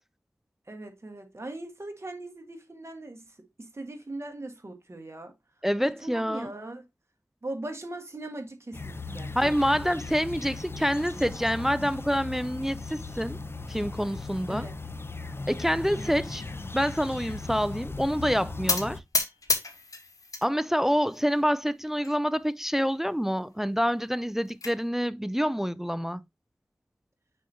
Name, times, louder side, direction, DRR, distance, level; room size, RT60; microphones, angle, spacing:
voice 1, 0.7-5.3 5.8-6.8 7.4-9.7 14.5-14.7 15.9-16.1, right 2 dB, 50° right, 1.7 m, -40 dB
voice 2, 5.6-6.5 9.3-13.4 13.7-14.7 15.5-16.4 16.7-19.0 20.4-26.2, equal, 5° right, 0.3 m, -27 dB
sound 1, 8.7-19.0, left 3 dB, 40° left, 0.6 m, -38 dB
sound 2, 18.7-20.5 20.8-21.5 22.0-22.1 22.4-22.5 22.9-23.0 24.1-24.7, left 3 dB, 80° left, 1.3 m, -30 dB
6.3 x 2.8 x 5.6 m
wide cardioid pair, 75°, 6 cm